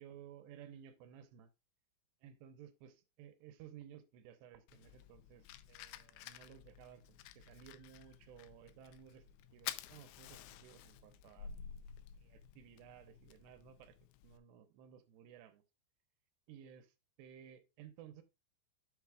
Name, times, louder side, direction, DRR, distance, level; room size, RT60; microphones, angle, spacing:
voice 1, 0.0-1.5 2.2-9.2 9.5-11.5 12.2-14.0 14.2-15.6 16.5-18.2, right 9 dB, 80° right, 2.9 m, -57 dB
Fire, 4.7-14.4, left 10 dB, 85° left, 2.8 m, -52 dB
8.2 x 7.4 x 2.3 m
omnidirectional pair, 5.1 m